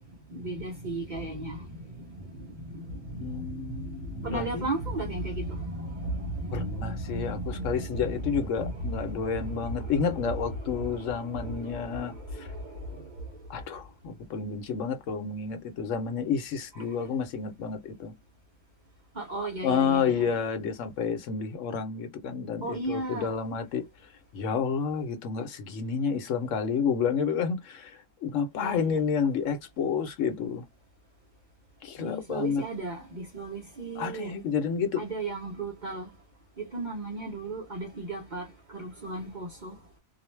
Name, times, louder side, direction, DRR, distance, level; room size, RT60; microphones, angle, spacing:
voice 1, 0.3-13.3 16.7-16.8 19.2-20.3 22.6-23.3 28.6-29.0 32.0-34.3 35.0-36.1 36.6-39.8, right 2 dB, 45° right, 0.6 m, -35 dB
voice 2, 3.1-4.7 6.5-12.5 13.5-18.1 19.6-23.9 24.3-30.6 31.8-32.6 34.0-35.0, left 6 dB, 70° left, 1.0 m, -30 dB
2.5 x 2.1 x 3.1 m
omnidirectional pair, 1.4 m